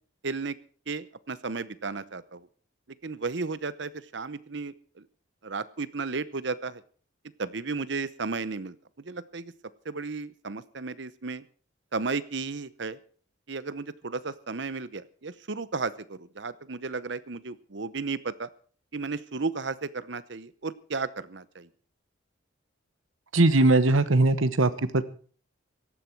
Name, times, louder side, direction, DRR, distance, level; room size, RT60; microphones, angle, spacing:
voice 1, 0.2-0.6 0.9-2.5 3.0-4.7 5.4-6.8 7.4-8.7 9.1-9.5 9.8-11.4 11.9-13.0 13.5-18.5 18.9-21.7, right 4 dB, 60° right, 16 dB, 0.8 m, -34 dB
voice 2, 23.3-25.0, right 2 dB, 80° right, 14 dB, 1.1 m, -20 dB
17.5 x 14.0 x 4.6 m, 0.43 s
head